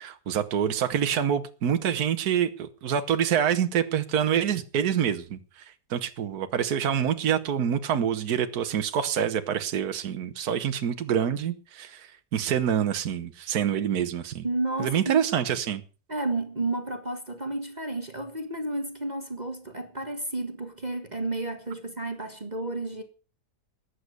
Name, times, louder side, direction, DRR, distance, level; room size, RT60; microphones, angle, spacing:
voice 1, 0.0-5.4 5.9-14.5 14.8-15.8, right 8 dB, 70° right, 1.6 m, -26 dB
voice 2, 14.4-15.2 16.1-23.0, right 2 dB, 25° right, 1.7 m, -31 dB
14.5 x 10.0 x 6.6 m
omnidirectional pair, 1.7 m